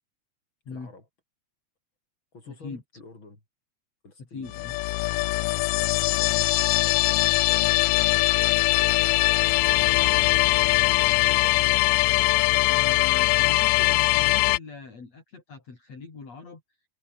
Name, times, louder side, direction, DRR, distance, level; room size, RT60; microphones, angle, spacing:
voice 1, 0.7-1.0 2.3-3.4 4.0-4.6 5.5-6.5 6.8-9.5 11.3-11.8, left 3 dB, 35° left, 8.2 m, -48 dB
voice 2, 2.5-2.8 4.2-4.8 12.7-16.8, left 4 dB, 50° left, 6.1 m, -41 dB
sound 1, 4.5-14.6, left 21 dB, 90° left, 2.2 m, -21 dB
omnidirectional pair, 3.7 m